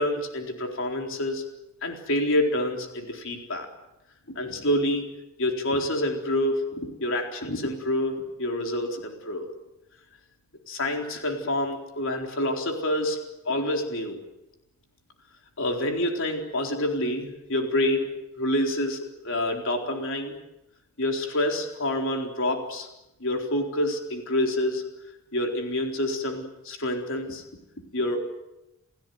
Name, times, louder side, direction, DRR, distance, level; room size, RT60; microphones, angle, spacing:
voice 1, 0.0-1.4 1.8-3.7 4.3-5.0 5.4-9.5 10.7-13.2 13.5-14.2 15.6-18.1 18.4-20.4 21.0-22.9 23.2-24.8 25.3-27.4 27.9-28.3, left 1 dB, 60° left, 3 dB, 4.1 m, -27 dB
29.0 x 17.0 x 9.4 m, 0.92 s
head